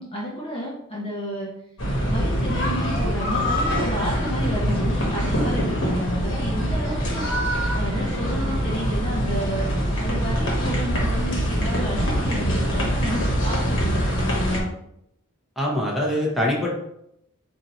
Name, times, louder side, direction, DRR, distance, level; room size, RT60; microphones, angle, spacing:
voice 1, 0.0-1.5 2.0-9.7 10.0-14.7, equal, 25° left, -4 dB, 0.7 m, -31 dB
sound 1, 1.8-14.6, equal, 60° left, 1.3 m, -24 dB
voice 2, 15.6-16.7, left 1 dB, ahead, -4 dB, 1.1 m, -23 dB
4.3 x 2.7 x 4.3 m, 0.78 s
head